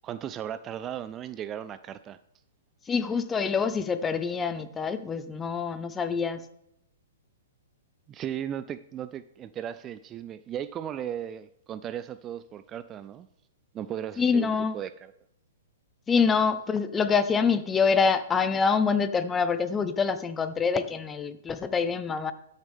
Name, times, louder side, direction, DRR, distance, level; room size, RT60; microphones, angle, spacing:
voice 1, 0.0-2.2 8.1-13.3 13.7-15.1, right 10 dB, 25° right, 14 dB, 0.3 m, -36 dB
voice 2, 2.9-6.4 14.2-14.8 16.1-22.3, left 5 dB, 15° left, 12 dB, 0.6 m, -25 dB
13.0 x 6.5 x 3.6 m, 0.76 s
hypercardioid pair, 130°, 0 cm